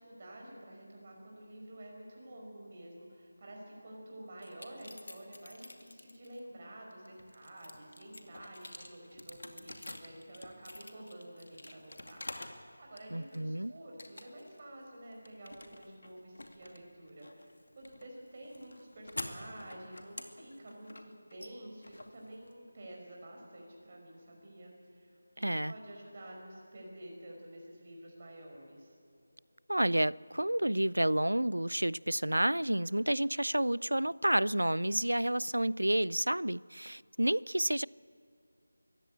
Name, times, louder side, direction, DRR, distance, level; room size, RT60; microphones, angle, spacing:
voice 1, 0.0-28.9, right 1 dB, 35° right, -1 dB, 5.0 m, -50 dB
sound 1, 4.4-6.4 6.9-12.6 13.0-13.6 14.0-14.6 14.9-22.8, left 1 dB, 70° left, 2.4 m, -48 dB
voice 2, 13.1-13.7 25.4-25.7 29.7-37.9, right 1 dB, 85° right, 23 dB, 0.4 m, -30 dB
24.0 x 15.5 x 8.7 m, 2.5 s
figure-of-eight pair, 165°, 0 cm